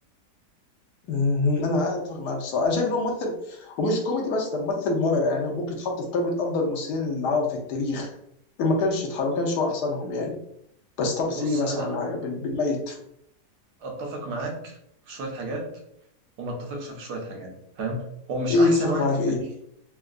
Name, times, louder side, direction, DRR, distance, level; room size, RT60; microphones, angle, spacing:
voice 1, 1.1-8.1 8.6-10.4 11.0-13.0 18.5-19.4, left 3 dB, 80° left, 1 dB, 1.3 m, -25 dB
voice 2, 11.2-12.0 13.8-14.8 15.1-15.7 16.4-19.5, right 2 dB, 80° right, 1 dB, 1.3 m, -32 dB
3.7 x 2.3 x 2.4 m, 0.73 s
omnidirectional pair, 1.7 m